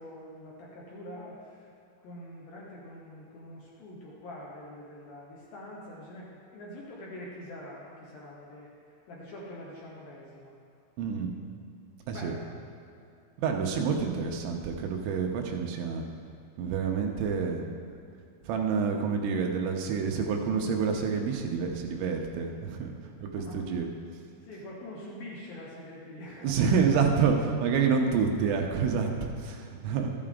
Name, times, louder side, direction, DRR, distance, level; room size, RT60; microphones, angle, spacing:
voice 1, 0.0-1.7 2.0-8.7 9.1-10.6 12.1-12.5 23.2-23.6 24.4-26.7, left 1 dB, 65° left, -5 dB, 2.6 m, -44 dB
voice 2, 11.0-11.3 12.1-12.3 13.4-16.0 16.6-17.7 18.4-22.9 23.3-23.9 26.4-30.1, right 6 dB, 90° right, 2 dB, 3.2 m, -28 dB
13.5 x 8.6 x 3.7 m, 2.6 s
omnidirectional pair, 5.3 m